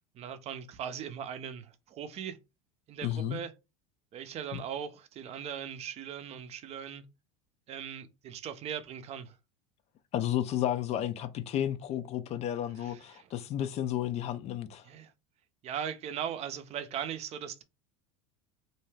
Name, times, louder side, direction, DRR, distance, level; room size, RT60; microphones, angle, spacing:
voice 1, 0.1-2.4 2.9-3.5 4.1-7.0 7.7-9.4 12.8-13.3 14.8-15.1 15.6-17.6, right 8 dB, 40° right, 0.5 m, -39 dB
voice 2, 3.0-3.4 4.5-4.6 10.1-14.9, left 11 dB, 40° left, 0.4 m, -32 dB
2.6 x 2.2 x 3.2 m
hypercardioid pair, 90°, 17 cm